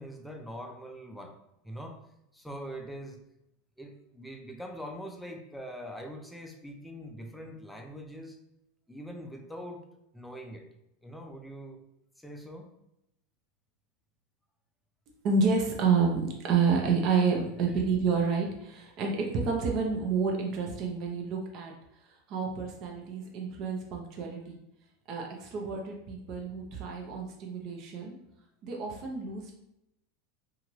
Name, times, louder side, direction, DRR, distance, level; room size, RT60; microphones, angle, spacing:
voice 1, 0.0-1.3 1.6-2.0 2.3-3.2 3.8-8.4 8.9-9.8 10.1-10.7 11.0-11.8 12.2-12.7, equal, ahead, 2 dB, 0.5 m, -43 dB
voice 2, 15.2-21.7 22.0-24.6 25.1-28.1 28.6-29.5, right 5 dB, 50° right, 0 dB, 0.7 m, -29 dB
2.8 x 2.4 x 3.0 m, 0.83 s
hypercardioid pair, 100°, 0 cm